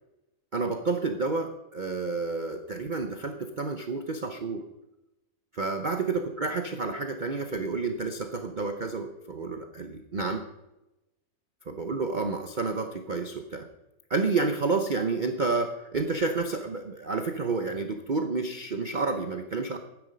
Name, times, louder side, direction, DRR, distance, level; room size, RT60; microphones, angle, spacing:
voice 1, 0.5-4.6 5.5-10.4 11.7-13.7 14.1-19.8, right 3 dB, 80° right, 6 dB, 0.4 m, -30 dB
12.0 x 9.7 x 5.2 m, 0.96 s
omnidirectional pair, 2.1 m